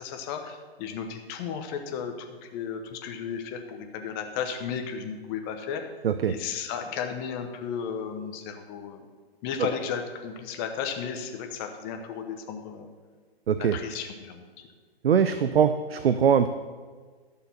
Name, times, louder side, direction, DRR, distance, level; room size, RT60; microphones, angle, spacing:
voice 1, 0.0-5.8 6.2-9.1 9.4-12.9 13.6-14.7, left 7 dB, 25° left, 5 dB, 1.0 m, -34 dB
voice 2, 13.5-13.8 15.0-16.5, right 7 dB, 70° right, 11 dB, 0.6 m, -22 dB
12.0 x 6.9 x 5.8 m, 1.5 s
hypercardioid pair, 140°, 31 cm